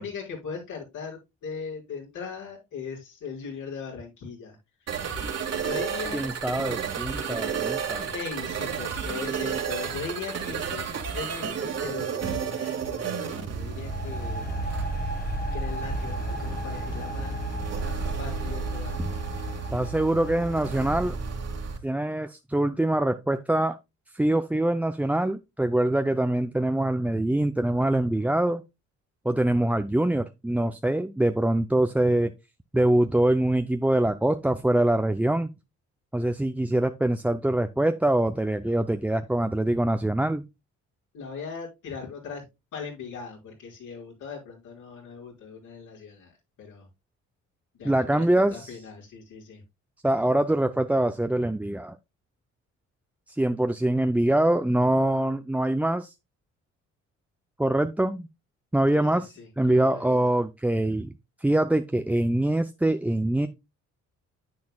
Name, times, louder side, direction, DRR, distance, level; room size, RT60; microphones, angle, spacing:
voice 1, 0.0-4.6 5.6-6.3 8.1-14.5 15.0-15.1 15.5-17.4 17.8-19.1 41.1-42.4 42.7-46.3 46.6-46.9 47.8-49.6 58.9-60.3, left 5 dB, 80° left, 5.5 m, -39 dB
sound 1, 4.9-21.8, right 6 dB, 55° right, 2.2 m, -32 dB
voice 2, 6.1-8.1 19.0-19.1 19.7-21.2 21.8-23.8 24.1-28.6 29.2-32.3 32.7-35.5 36.1-40.5 47.8-48.8 50.0-52.0 53.3-56.1 57.6-58.3 58.7-61.1 61.4-63.5, right 1 dB, 5° right, 0.5 m, -24 dB
sound 2, 13.7-21.5, equal, 30° left, 1.4 m, -35 dB
9.5 x 8.5 x 2.3 m
cardioid pair, 90°, 30 cm